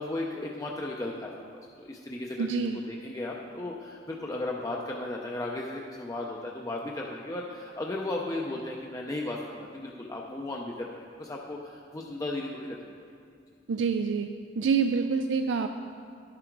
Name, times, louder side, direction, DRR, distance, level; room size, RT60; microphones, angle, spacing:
voice 1, 0.0-12.8, left 2 dB, 20° left, -1 dB, 0.6 m, -35 dB
voice 2, 2.4-2.8 13.7-14.3 14.6-15.7, right 5 dB, 75° right, 7 dB, 0.4 m, -26 dB
11.0 x 7.6 x 4.6 m, 2.4 s
head